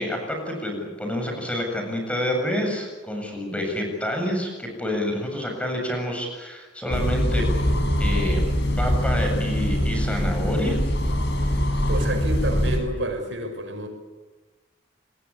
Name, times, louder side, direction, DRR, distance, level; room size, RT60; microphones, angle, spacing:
voice 1, 0.0-7.5 8.0-8.5 8.8-10.8, left 1 dB, 5° left, 2 dB, 7.8 m, -28 dB
sound 1, 6.9-12.8, equal, 65° left, 6.0 m, -23 dB
voice 2, 11.9-13.9, right 1 dB, 90° right, 4 dB, 6.2 m, -29 dB
28.5 x 20.5 x 8.6 m, 1.2 s
head